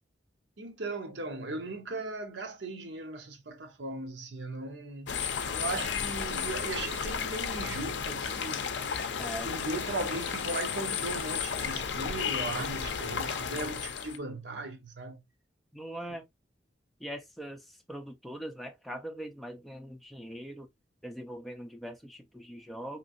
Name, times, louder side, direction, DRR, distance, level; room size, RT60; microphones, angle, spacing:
voice 1, 0.6-5.2 5.5-8.7 9.4-15.2, right 2 dB, 75° right, 0.8 m, -38 dB
sound 1, 5.1-14.2, left 6 dB, 75° left, 0.5 m, -33 dB
voice 2, 9.2-9.5 15.7-16.3 17.0-17.6 17.9-20.7 21.0-23.0, equal, ahead, 0.5 m, -41 dB
3.0 x 2.5 x 2.5 m
head